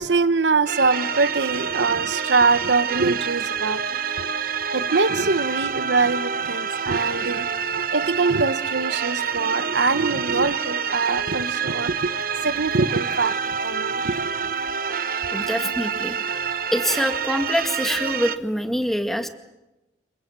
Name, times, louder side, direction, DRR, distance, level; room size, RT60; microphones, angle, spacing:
voice 1, 0.0-12.1 12.4-13.4 13.6-14.6, right 4 dB, 85° right, 1.1 m, -23 dB
sound 1, 0.7-18.4, right 6 dB, 55° right, 1.2 m, -27 dB
voice 2, 15.3-16.2 16.7-19.3, equal, ahead, 2.1 m, -25 dB
28.5 x 23.5 x 7.6 m
head